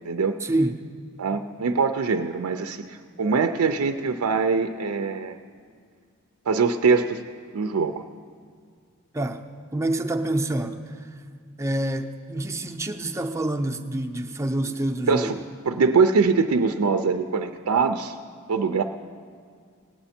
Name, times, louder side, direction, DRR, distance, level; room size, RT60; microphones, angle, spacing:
voice 1, 0.4-0.8 9.1-9.4 9.7-11.0 11.6-15.4, right 1 dB, 15° right, 5 dB, 0.6 m, -27 dB
voice 2, 1.2-5.4 6.5-7.2 7.5-8.0 15.1-15.4 15.7-18.1 18.5-18.8, right 5 dB, 85° right, 6 dB, 0.5 m, -23 dB
18.0 x 9.0 x 4.3 m, 2.2 s
head